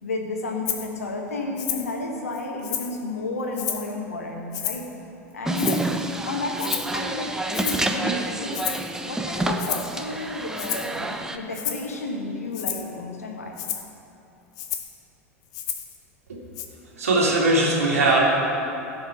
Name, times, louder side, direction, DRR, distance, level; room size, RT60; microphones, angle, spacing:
voice 1, 0.0-4.9 5.3-5.9 6.2-8.6 9.0-13.6, left 2 dB, 85° left, 1 dB, 1.5 m, -31 dB
Rattle (instrument), 0.7-0.9 1.6-1.9 2.3-3.0 3.5-3.9 4.5-4.9 5.6-6.0 6.6-7.0 7.5-7.9 8.5-8.9 9.6-9.9 10.6-11.0 11.5-11.9 12.5-12.9 13.6-13.9 14.6-14.9 15.5-16.0 16.6-16.7, left 10 dB, 50° left, 1.0 m, -31 dB
sound 1, 5.5-11.4, right 2 dB, 5° right, 0.8 m, -28 dB
voice 2, 17.0-18.2, right 2 dB, 85° right, -4 dB, 2.6 m, -20 dB
15.5 x 5.6 x 5.7 m, 2.9 s
hypercardioid pair, 85°, 8 cm